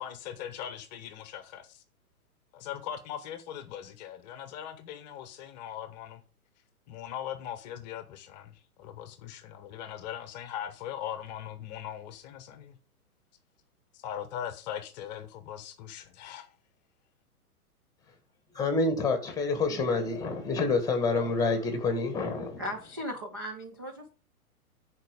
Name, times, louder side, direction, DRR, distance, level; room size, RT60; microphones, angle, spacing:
voice 1, 0.0-1.8 2.5-6.2 6.9-12.8 13.9-16.5, left 10 dB, 30° left, 0.9 m, -40 dB
voice 2, 18.5-22.6, left 3 dB, 10° left, 1.5 m, -28 dB
voice 3, 22.6-24.1, equal, 15° right, 0.3 m, -37 dB
10.5 x 4.6 x 5.0 m
figure-of-eight pair, 120°, 45 cm